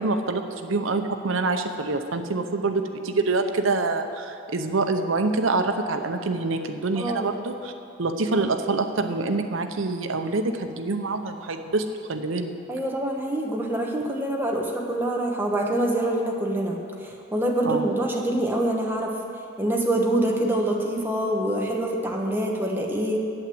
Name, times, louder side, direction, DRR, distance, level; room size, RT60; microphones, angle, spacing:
voice 1, 0.0-7.7 8.0-12.5 17.7-17.9, right 3 dB, 80° right, 7 dB, 0.8 m, -26 dB
voice 2, 7.0-7.3 12.7-19.1 19.6-23.2, right 1 dB, 10° right, -1 dB, 1.1 m, -25 dB
8.8 x 8.0 x 7.8 m, 2.6 s
head